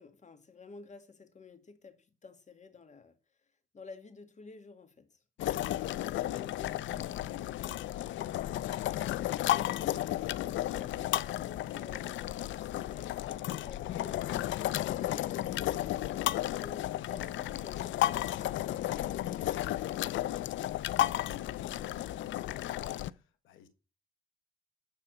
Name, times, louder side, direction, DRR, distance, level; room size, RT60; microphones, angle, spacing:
voice 1, 0.0-3.2 3.7-5.2 8.8-19.5, left 4 dB, 35° left, 2.0 m, -52 dB
sound 1, 5.4-23.1, left 14 dB, 70° left, 0.5 m, -33 dB
voice 2, 5.5-7.8 20.9-23.7, left 8 dB, 90° left, 1.4 m, -53 dB
10.5 x 4.2 x 6.7 m
cardioid pair, 90°, 20 cm